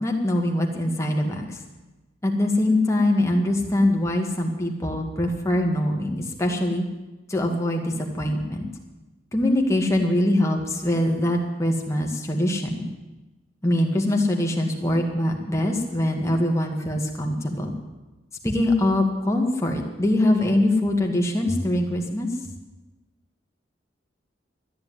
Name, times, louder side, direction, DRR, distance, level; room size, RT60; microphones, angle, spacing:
voice 1, 0.0-1.6 2.2-6.9 7.3-8.7 9.3-12.9 13.6-17.7 18.4-22.3, left 1 dB, 15° left, 1 dB, 2.0 m, -23 dB
13.5 x 10.0 x 9.6 m, 1.1 s
head